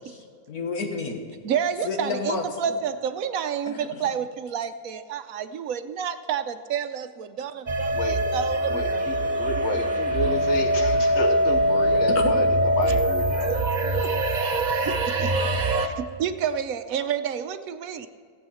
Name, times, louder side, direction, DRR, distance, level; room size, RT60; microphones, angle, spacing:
voice 1, 0.0-1.4 1.8-2.8 3.7-3.8 12.1-12.3 15.8-16.0, left 4 dB, 80° left, 3 dB, 2.0 m, -31 dB
voice 2, 1.4-9.0 9.6-9.7 12.8-12.9 13.4-13.5 14.0-14.2 14.8-15.4 15.8-18.1, right 8 dB, 70° right, 10 dB, 1.1 m, -30 dB
sound 1, 7.7-15.9, right 1 dB, 35° right, 0.8 m, -23 dB
voice 3, 8.7-12.5 12.8-13.6, left 2 dB, 50° left, 6 dB, 1.4 m, -30 dB
16.5 x 8.1 x 5.7 m, 2.1 s
omnidirectional pair, 1.6 m